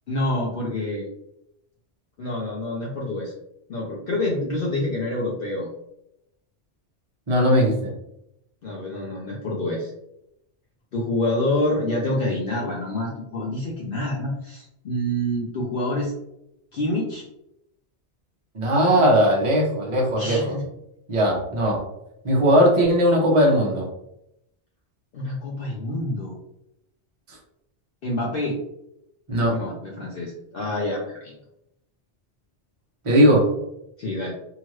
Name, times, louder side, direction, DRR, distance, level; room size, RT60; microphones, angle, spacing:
voice 1, 0.1-1.1 2.2-3.3 3.7-5.7 8.6-9.9 10.9-16.1 16.7-17.2 20.2-20.6 25.1-26.4 28.0-28.6 29.5-31.3 34.0-34.3, left 1 dB, 60° left, -2 dB, 0.7 m, -27 dB
voice 2, 7.3-7.9 18.5-20.6 21.1-21.8 22.2-23.9 29.3-29.6 33.0-33.4, equal, 30° right, -2 dB, 0.8 m, -18 dB
2.8 x 2.4 x 3.1 m, 0.82 s
omnidirectional pair, 1.2 m